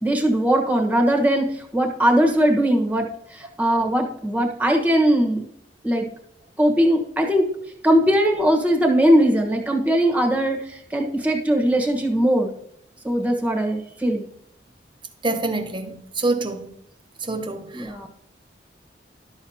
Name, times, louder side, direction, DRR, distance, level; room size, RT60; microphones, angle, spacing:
voice 1, 0.0-5.4 5.8-6.1 6.6-7.5 7.8-12.5 13.0-14.2 17.7-18.1, equal, 10° right, 1.2 m, -20 dB
voice 2, 15.2-16.7 17.2-18.1, right 2 dB, 25° right, 0.8 m, -26 dB
12.0 x 7.0 x 2.8 m
head